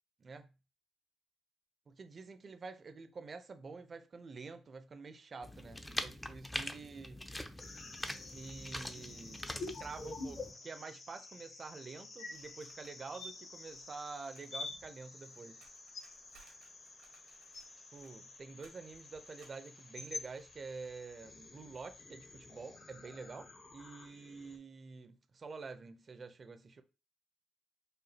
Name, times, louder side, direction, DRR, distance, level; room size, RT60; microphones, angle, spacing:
voice 1, 1.9-7.3 8.3-9.5 9.8-15.6 17.9-26.8, right 4 dB, 40° right, 0.5 m, -48 dB
sound 1, 5.4-10.5, left 1 dB, 10° left, 0.4 m, -43 dB
sound 2, 7.6-24.6, left 3 dB, 45° left, 0.8 m, -49 dB
sound 3, 12.3-14.5 14.8-20.9, right 5 dB, 85° right, 1.2 m, -67 dB
4.9 x 2.3 x 2.8 m
cardioid pair, 90°, 0 cm